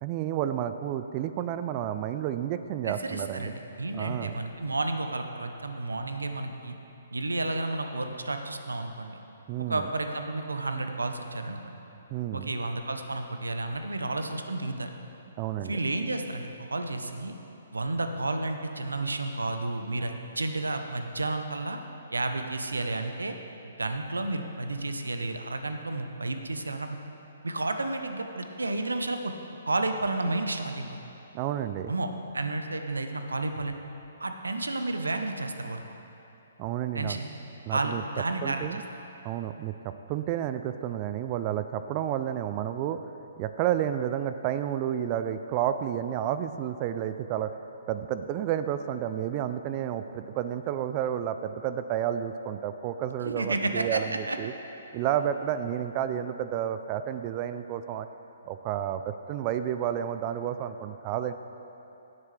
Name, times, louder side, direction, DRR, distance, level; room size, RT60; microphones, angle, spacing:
voice 1, 0.0-3.5 3.9-4.3 9.5-9.9 12.1-12.5 15.4-15.8 31.3-31.9 36.6-37.2 37.7-38.0 38.4-38.8 39.2-43.0 43.4-47.5 47.9-54.5 54.9-58.1 58.5-61.3, right 10 dB, 35° right, 10 dB, 0.3 m, -31 dB
voice 2, 2.8-6.8 7.1-9.2 9.7-11.8 12.3-14.9 15.6-17.3 17.7-21.8 22.1-23.3 23.6-27.0 27.4-29.3 29.7-30.8 31.9-32.1 32.3-33.7 34.2-35.8 36.9-37.3 37.7-38.7 53.2-54.0 54.3-54.4, right 2 dB, 90° right, 6 dB, 0.8 m, -31 dB
16.5 x 7.1 x 3.3 m, 2.9 s
figure-of-eight pair, 135°, 0 cm